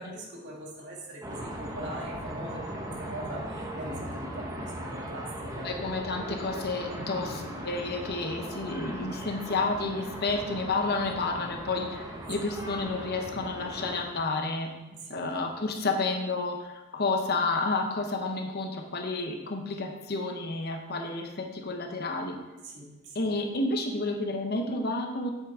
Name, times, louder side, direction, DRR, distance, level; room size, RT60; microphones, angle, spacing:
voice 1, 0.0-2.8 3.1-5.7 6.9-7.2 15.1-15.2 22.6-23.2, right 1 dB, 55° right, -3 dB, 2.2 m, -41 dB
sound 1, 1.2-14.0, right 1 dB, 15° right, 1.0 m, -38 dB
voice 2, 5.6-14.7 15.1-22.4 23.1-25.3, left 3 dB, 50° left, 4 dB, 0.8 m, -30 dB
8.1 x 7.5 x 3.5 m, 1.1 s
head